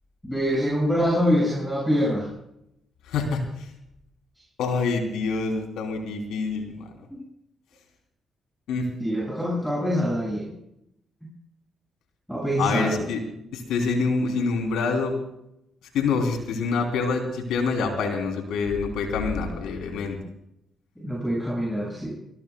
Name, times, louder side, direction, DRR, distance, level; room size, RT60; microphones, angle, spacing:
voice 1, 0.2-2.3 7.1-7.2 9.0-10.5 12.3-13.1 21.0-22.1, equal, 5° left, -3 dB, 6.9 m, -25 dB
voice 2, 3.1-3.4 4.6-6.8 8.7-8.9 12.6-13.2 13.5-15.1 15.9-20.2, left 4 dB, 80° left, 3 dB, 3.5 m, -26 dB
23.5 x 20.5 x 2.4 m, 0.80 s
supercardioid pair, 55°, 0 cm